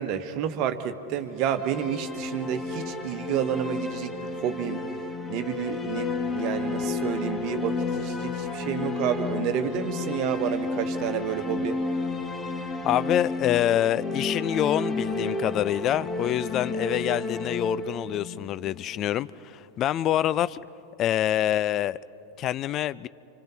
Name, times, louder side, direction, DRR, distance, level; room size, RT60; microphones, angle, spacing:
voice 1, 0.0-4.8 5.3-11.8, right 9 dB, 40° right, 8 dB, 1.3 m, -30 dB
sound 1, 1.3-19.3, left 3 dB, 15° left, 1.4 m, -31 dB
voice 2, 12.8-20.6 21.0-22.0 22.4-23.1, left 12 dB, 35° left, 18 dB, 0.4 m, -26 dB
29.5 x 25.5 x 4.2 m, 2.9 s
figure-of-eight pair, 90°, 0 cm